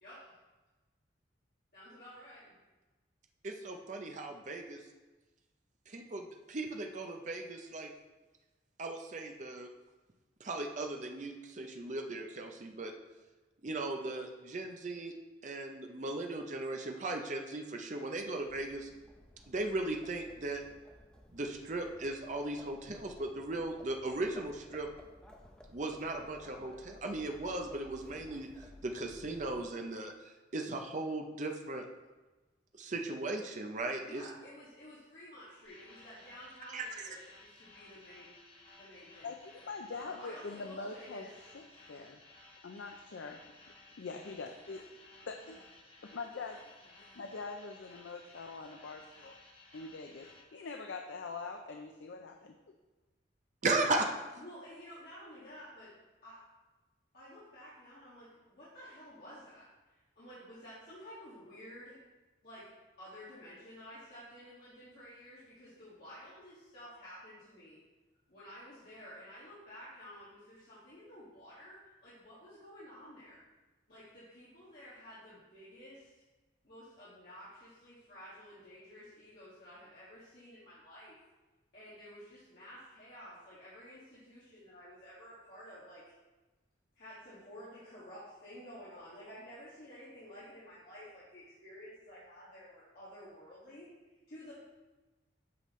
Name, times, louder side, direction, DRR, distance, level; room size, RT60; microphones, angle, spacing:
voice 1, 1.7-2.6 34.0-38.4 38.7-39.3 39.9-41.3 54.4-55.9 56.2-56.4 57.1-62.0 62.4-62.7 63.0-67.8 68.3-73.4 73.9-76.1 76.6-81.2 81.7-86.1 87.0-94.5, equal, 55° left, -11 dB, 2.0 m, -52 dB
voice 2, 3.4-4.8 5.9-7.9 8.8-9.7 10.4-12.9 13.6-15.1 15.4-18.9 19.5-20.6 21.3-24.9 25.7-31.8 32.7-34.2 36.7-37.1 53.6-54.1, right 2 dB, 40° right, 3 dB, 0.6 m, -37 dB
Livestock farm animals working animals, 18.3-29.9, left 1 dB, 5° left, 0.6 m, -57 dB
sound 1, 35.6-50.4, left 2 dB, 30° left, 1.1 m, -58 dB
voice 3, 39.6-41.3 41.5-42.2 42.6-43.4 43.9-44.9 45.3-45.6 46.1-46.6 47.2-49.3 49.7-52.6, left 4 dB, 75° left, 4 dB, 0.5 m, -43 dB
8.5 x 5.7 x 3.1 m, 1.2 s
head